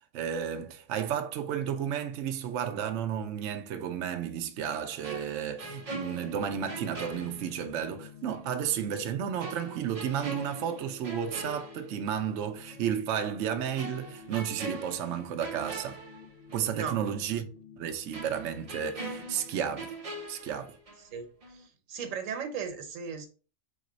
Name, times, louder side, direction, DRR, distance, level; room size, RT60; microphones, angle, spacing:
voice 1, 0.1-16.0 16.5-17.5 17.8-19.9 20.3-20.8, right 8 dB, 70° right, 0.8 m, -32 dB
sound 1, 4.7-20.0, left 6 dB, 55° left, 1.0 m, -52 dB
sound 2, 5.0-8.0 8.3-8.5 9.4-12.4 12.7-12.9 13.8-16.8 17.1-17.2 18.1-21.2 21.4-21.7, right 2 dB, 35° right, 0.7 m, -42 dB
voice 2, 21.1-23.3, right 6 dB, 90° right, 1.2 m, -37 dB
4.0 x 3.0 x 3.9 m
omnidirectional pair, 1.3 m